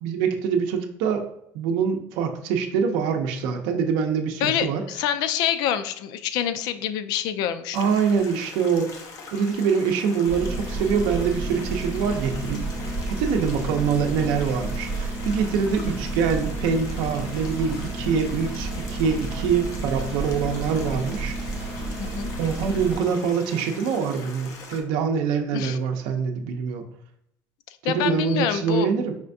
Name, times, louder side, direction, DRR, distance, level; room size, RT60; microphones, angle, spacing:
voice 1, 0.0-1.2 1.5-4.8 7.7-8.9 9.3-12.6 13.1-21.3 22.4-26.8 27.8-29.1, right 6 dB, 80° right, 4 dB, 0.6 m, -24 dB
voice 2, 4.4-7.9 22.0-22.3 25.5-25.8 27.8-28.9, left 10 dB, 70° left, 12 dB, 0.4 m, -26 dB
Stream, 7.7-24.8, left 3 dB, 50° left, 0.8 m, -42 dB
sound 1, 10.3-23.0, right 2 dB, 35° right, 1.6 m, -31 dB
5.0 x 3.3 x 2.6 m, 0.76 s
cardioid pair, 150°, 7 cm